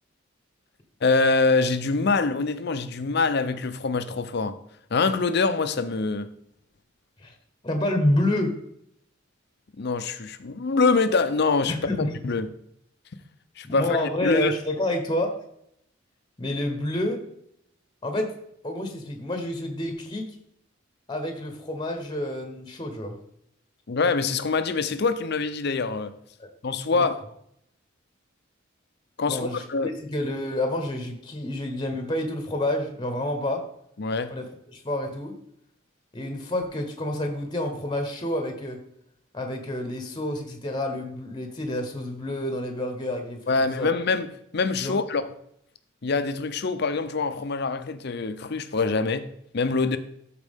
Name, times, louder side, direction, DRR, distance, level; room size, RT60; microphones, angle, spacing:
voice 1, 1.0-4.6 4.9-6.3 9.8-11.9 12.2-12.5 13.6-14.5 23.9-26.1 26.6-27.2 29.2-29.9 34.0-34.3 43.5-45.2 46.0-50.0, left 4 dB, 55° left, 0.6 m, -24 dB
voice 2, 7.6-8.6 11.7-12.2 13.7-15.4 16.4-17.2 18.0-18.3 18.6-20.4 21.1-23.2 26.4-26.5 26.9-27.1 29.3-33.7 34.3-34.4 34.7-35.3 36.1-38.8 39.3-43.9 44.8-45.0, left 1 dB, 20° left, 1.0 m, -28 dB
13.5 x 4.5 x 3.6 m
head